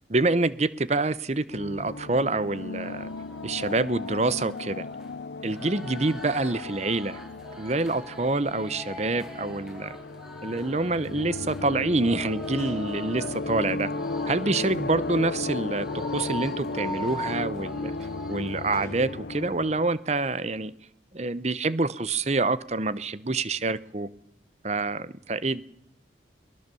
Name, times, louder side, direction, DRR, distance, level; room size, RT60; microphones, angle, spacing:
voice 1, 0.1-3.1 3.4-4.9 5.4-7.2 7.6-10.0 10.4-13.9 14.3-17.9 18.3-20.7 21.1-24.1 24.6-25.6, right 2 dB, 40° right, 16 dB, 0.8 m, -27 dB
sound 1, 1.5-19.9, left 3 dB, 75° left, 0.7 m, -35 dB
sound 2, 2.7-18.8, equal, 5° right, 4.3 m, -43 dB
sound 3, 12.3-13.0 14.2-14.3 15.5-19.3 21.1-21.6 22.0-22.8 23.3-23.5, left 1 dB, 15° left, 5.1 m, -53 dB
23.0 x 19.5 x 7.0 m, 0.79 s
head